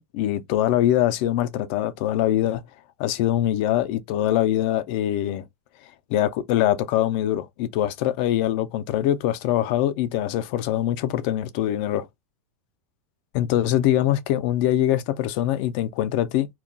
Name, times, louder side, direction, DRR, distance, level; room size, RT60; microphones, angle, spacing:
voice 1, 0.0-2.6 3.0-5.4 6.1-12.1 13.3-16.5, left 12 dB, 40° left, 0.4 m, -23 dB
2.3 x 2.2 x 3.7 m
supercardioid pair, 160°, 8 cm